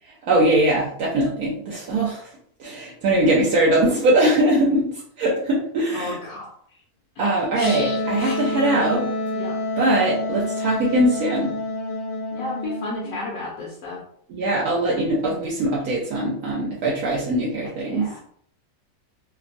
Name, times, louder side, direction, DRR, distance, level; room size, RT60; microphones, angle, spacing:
voice 1, 0.3-2.3 2.6-6.2 7.2-9.1 9.8-11.5 14.3-18.1, right 1 dB, 70° right, -4 dB, 1.1 m, -21 dB
voice 2, 5.9-6.5 7.2-8.4 9.3-9.6 12.3-14.0 17.8-18.2, left 2 dB, 65° left, -5 dB, 1.0 m, -33 dB
Wind instrument woodwind instrument, 7.6-13.2, left 2 dB, 85° left, 1.2 m, -28 dB
2.9 x 2.1 x 2.5 m, 0.63 s
omnidirectional pair, 1.7 m